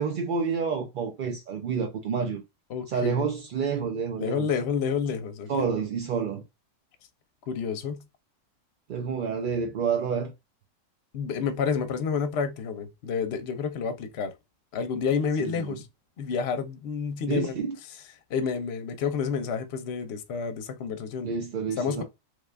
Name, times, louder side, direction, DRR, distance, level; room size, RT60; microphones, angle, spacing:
voice 1, 0.0-2.4 2.9-4.5 5.5-6.4 8.9-10.3 15.4-15.8 17.3-17.8 21.2-22.0, right 6 dB, 65° right, 0.5 m, -29 dB
voice 2, 2.7-3.2 4.2-5.7 7.5-8.0 11.1-14.3 14.7-15.8 16.2-17.5 18.3-21.3 21.8-22.0, left 6 dB, 60° left, 0.8 m, -29 dB
3.3 x 2.3 x 3.3 m
omnidirectional pair, 1.4 m